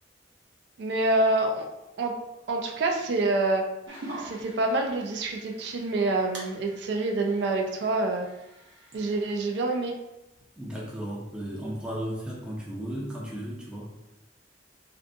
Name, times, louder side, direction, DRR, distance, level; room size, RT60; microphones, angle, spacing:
voice 1, 0.8-1.7 2.0-2.1 2.5-3.6 4.2-8.3 8.9-9.9, right 2 dB, 65° right, 2 dB, 0.3 m, -26 dB
sound 1, 3.9-9.4, right 1 dB, 85° right, 0.7 m, -45 dB
voice 2, 10.6-13.9, equal, 5° right, -4 dB, 0.5 m, -35 dB
2.5 x 2.5 x 2.2 m, 0.93 s
head